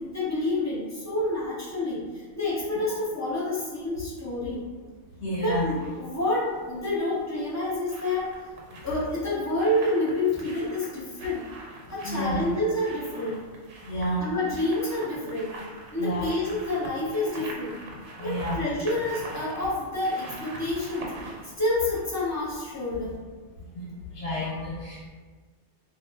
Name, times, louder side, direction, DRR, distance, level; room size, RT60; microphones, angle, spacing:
voice 1, 0.0-4.6 5.4-8.3 8.8-11.5 11.9-13.4 14.2-15.5 15.9-17.8 18.2-21.1 21.6-23.2, left 1 dB, 25° left, -9 dB, 0.3 m, -28 dB
voice 2, 5.2-5.6 12.0-12.4 13.8-14.3 16.0-16.3 18.2-18.6 23.7-23.9 24.1-25.1, equal, 65° left, -7 dB, 1.0 m, -30 dB
sound 1, 5.3-6.0 7.2-22.8 23.1-23.2, right 2 dB, 70° right, 0.9 m, -44 dB
2.3 x 2.0 x 3.3 m, 1.4 s
omnidirectional pair, 1.3 m